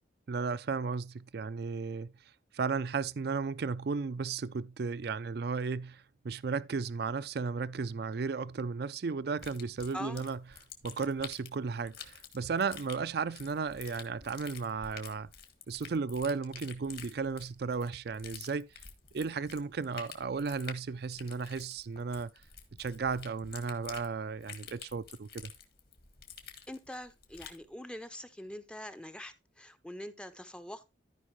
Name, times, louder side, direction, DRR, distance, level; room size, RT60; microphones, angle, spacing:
voice 1, 0.3-2.1 2.5-10.4 10.8-15.3 15.7-18.7 19.1-22.3 22.8-25.5, right 5 dB, 55° right, 0.4 m, -34 dB
sound 1, 9.4-27.6, left 7 dB, 50° left, 1.6 m, -49 dB
voice 2, 9.9-10.2 26.7-30.8, left 1 dB, 5° left, 0.6 m, -44 dB
13.5 x 5.3 x 3.1 m
head